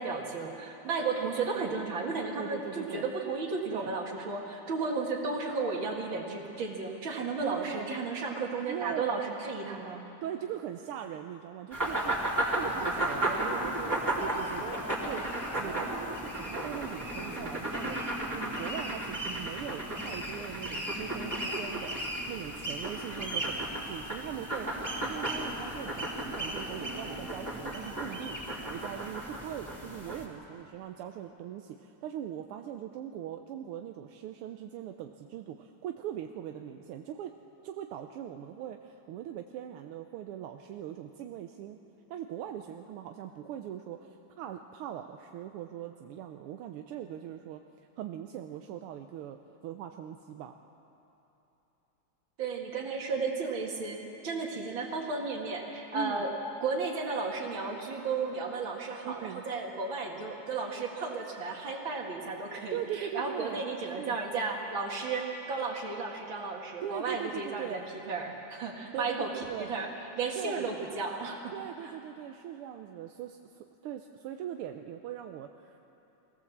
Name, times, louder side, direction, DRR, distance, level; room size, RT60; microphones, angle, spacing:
voice 1, 0.0-10.0 52.4-56.3 56.6-67.8 68.1-69.3 69.6-69.9 70.2-71.5, right 4 dB, 65° right, 1 dB, 2.8 m, -34 dB
voice 2, 2.4-3.1 3.7-3.9 7.4-7.9 8.7-9.2 10.2-12.2 12.4-13.9 14.2-14.8 15.0-15.3 15.6-22.0 22.3-37.3 37.6-41.8 42.1-47.6 48.0-49.4 49.6-50.5 55.9-56.3 59.0-59.4 62.7-64.2 66.8-67.8 68.9-69.7 70.4-70.7 71.5-75.8, right 10 dB, 85° right, 5 dB, 1.6 m, -40 dB
sound 1, 11.7-30.3, right 1 dB, 10° right, 3.3 m, -34 dB
23.5 x 17.0 x 7.2 m, 3.0 s
omnidirectional pair, 2.4 m